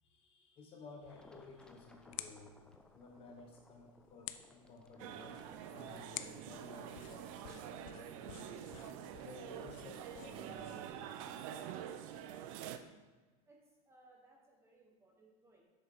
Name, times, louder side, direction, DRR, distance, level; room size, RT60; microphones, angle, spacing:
voice 1, 0.0-2.5 2.9-5.4 5.7-8.7 9.2-11.1, left 3 dB, 30° left, 1 dB, 1.1 m, -55 dB
sound 1, 1.0-11.0, left 13 dB, 65° left, 0.5 m, -53 dB
sound 2, 1.1-10.9, left 2 dB, 5° left, 0.4 m, -64 dB
sound 3, 5.0-12.8, right 10 dB, 60° right, 0.6 m, -47 dB
voice 2, 13.5-15.6, right 2 dB, 15° right, -1 dB, 1.3 m, -65 dB
7.8 x 6.2 x 3.7 m, 1.3 s
supercardioid pair, 145°, 19 cm